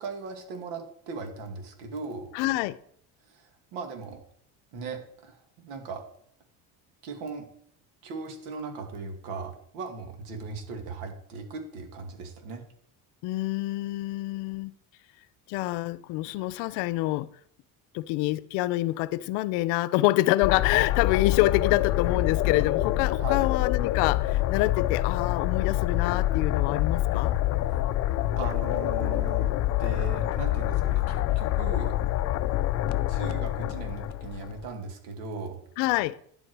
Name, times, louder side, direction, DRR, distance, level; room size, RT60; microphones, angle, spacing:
voice 1, 0.0-2.4 3.3-4.2 4.7-6.1 7.0-7.5 8.0-12.7 23.2-23.5 28.4-32.0 33.1-35.6, right 4 dB, 85° right, 2.4 m, -38 dB
voice 2, 2.3-2.8 13.2-14.7 15.5-17.3 17.9-27.4 35.8-36.2, left 18 dB, 85° left, 0.6 m, -26 dB
sound 1, 20.4-34.7, left 14 dB, 40° left, 0.5 m, -26 dB
10.5 x 8.0 x 4.7 m
cardioid pair, 175°, 39 cm